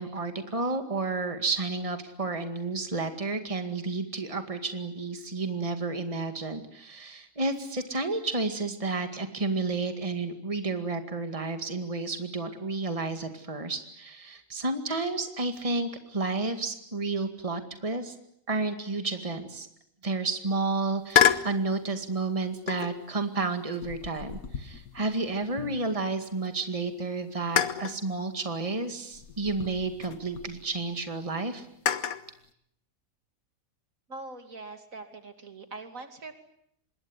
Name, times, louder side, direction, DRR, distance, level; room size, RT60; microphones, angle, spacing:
voice 1, 0.0-18.2 18.5-19.7 20.0-31.7, right 3 dB, 25° right, 7 dB, 2.2 m, -31 dB
sound 1, 21.1-21.6 22.7-23.1 23.7-26.1 26.4-26.5 27.6-28.0 29.1-30.5 31.9-32.3, left 9 dB, 90° left, 1.8 m, -28 dB
voice 2, 34.1-36.3, right 3 dB, 70° right, 7 dB, 3.0 m, -42 dB
26.0 x 22.0 x 9.8 m, 0.73 s
omnidirectional pair, 1.5 m